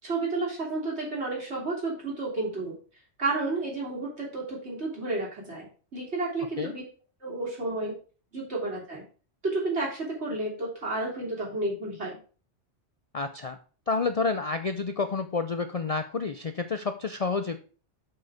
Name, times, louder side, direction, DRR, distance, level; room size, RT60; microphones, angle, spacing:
voice 1, 0.0-2.7 3.2-5.7 5.9-6.8 7.2-7.9 8.3-9.0 9.4-12.2, right 2 dB, 65° right, -3 dB, 3.5 m, -31 dB
voice 2, 13.1-13.6 13.9-17.6, left 4 dB, 45° left, 9 dB, 0.5 m, -29 dB
6.6 x 6.4 x 4.9 m, 0.39 s
omnidirectional pair, 1.2 m